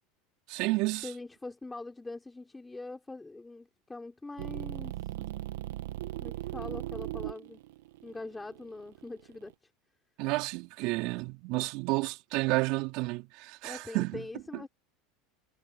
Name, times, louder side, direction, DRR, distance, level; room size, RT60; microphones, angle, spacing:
voice 1, 0.5-1.1 5.2-5.3 10.2-14.3 14.5-14.6, right 24 dB, 60° right, 4.5 m, -31 dB
voice 2, 1.0-5.0 6.2-7.6 8.0-9.5 13.6-14.7, left 2 dB, 10° left, 4.0 m, -43 dB
sound 1, 4.4-9.5, right 16 dB, 75° right, 2.0 m, -38 dB
hypercardioid pair, 90°, 0 cm